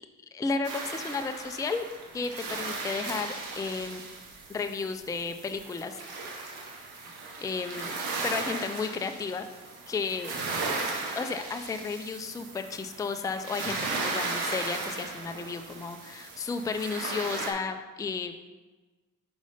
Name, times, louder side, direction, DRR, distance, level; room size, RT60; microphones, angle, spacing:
voice 1, 0.3-1.9 2.1-4.0 4.5-6.0 7.4-7.9 8.2-9.5 9.9-10.3 11.1-18.3, left 4 dB, 10° left, 7 dB, 0.4 m, -33 dB
sound 1, 0.6-17.5, right 3 dB, 85° right, 1.3 m, -36 dB
5.4 x 5.2 x 5.0 m, 1.2 s
cardioid pair, 95°, 38 cm